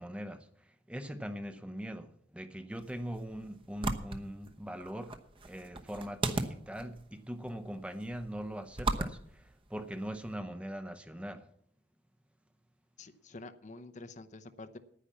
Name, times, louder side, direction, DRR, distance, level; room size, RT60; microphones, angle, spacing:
voice 1, 0.0-5.2 5.5-11.5, equal, 5° right, 0.7 m, -41 dB
sound 1, 2.7-10.3, right 2 dB, 30° right, 1.0 m, -39 dB
voice 2, 13.0-14.8, left 3 dB, 45° left, 0.8 m, -48 dB
9.9 x 9.8 x 7.2 m
head